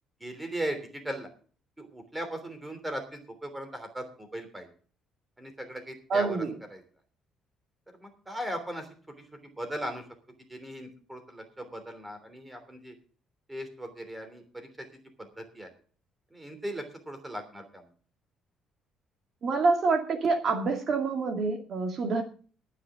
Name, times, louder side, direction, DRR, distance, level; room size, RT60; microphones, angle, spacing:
voice 1, 0.2-1.3 1.8-4.7 5.4-6.4 6.7-6.8 8.0-8.9 9.6-10.0 10.5-12.9 13.5-14.7 15.2-15.7 16.3-17.9, right 1 dB, 10° right, 7 dB, 3.1 m, -38 dB
voice 2, 6.1-6.5 19.4-22.2, right 4 dB, 45° right, 4 dB, 2.1 m, -26 dB
20.0 x 9.7 x 3.7 m, 0.41 s
cardioid pair, 150°, 0 cm